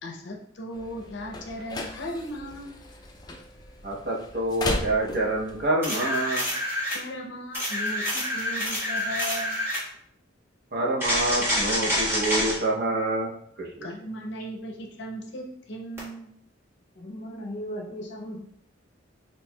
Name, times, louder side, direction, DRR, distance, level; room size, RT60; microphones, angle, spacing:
voice 1, 0.0-2.7 6.9-9.6 13.8-16.3, equal, 65° left, 1 dB, 0.6 m, -37 dB
sound 1, 0.7-5.7, left 2 dB, 20° left, 0.4 m, -36 dB
voice 2, 3.8-6.5 10.7-13.9, right 2 dB, 55° right, -2 dB, 0.7 m, -27 dB
sound 2, 5.8-7.0 7.5-9.9 11.0-12.6 16.0-16.1, equal, 10° right, 1.4 m, -27 dB
voice 3, 16.9-18.4, equal, 40° left, -4 dB, 1.1 m, -36 dB
4.4 x 3.1 x 2.2 m, 0.67 s
head